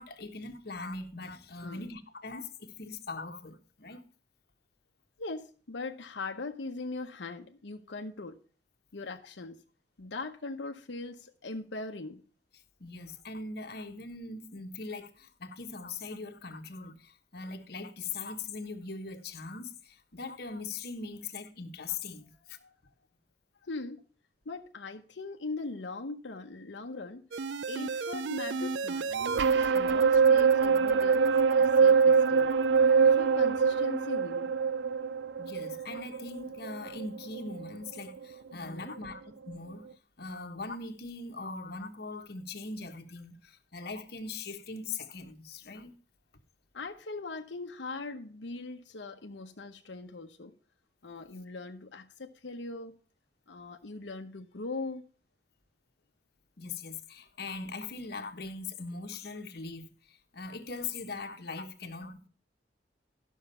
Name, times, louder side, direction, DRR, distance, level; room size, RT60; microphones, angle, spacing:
voice 1, 0.0-4.0 12.8-22.6 28.6-28.7 35.4-39.9 40.2-45.9 56.6-62.3, left 3 dB, 60° left, 1.3 m, -41 dB
voice 2, 5.2-8.4 8.9-9.6 10.0-12.2 22.6-22.7 23.6-24.0 24.5-27.2 27.7-29.1 29.5-32.5 33.1-34.5 38.5-38.9 46.7-50.5 51.0-53.0 53.5-55.0, left 3 dB, 90° left, 0.9 m, -40 dB
sound 1, 27.3-37.7 38.1-38.2, right 5 dB, 80° right, 0.5 m, -25 dB
12.0 x 6.4 x 5.5 m
head